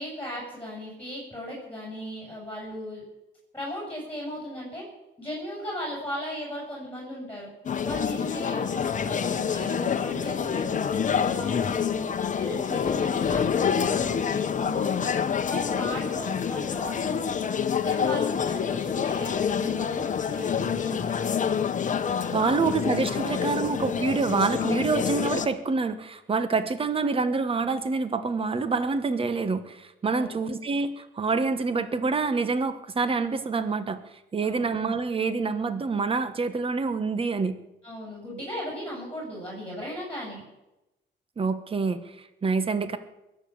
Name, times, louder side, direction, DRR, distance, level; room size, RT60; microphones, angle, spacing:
voice 1, 0.0-3.0 3.5-4.8 5.2-7.5 7.8-12.1 12.4-15.1 15.5-17.4 17.8-21.6 22.4-22.7 23.1-23.6 30.1-30.4 34.4-34.7 37.8-40.4, equal, 10° left, -4 dB, 7.8 m, -37 dB
sound 1, 7.7-25.5, left 7 dB, 40° left, 1.1 m, -27 dB
voice 2, 22.3-34.0 34.3-37.6 41.4-43.0, right 4 dB, 30° right, 11 dB, 1.3 m, -27 dB
22.0 x 7.7 x 8.6 m, 0.95 s
cardioid pair, 120°, 19 cm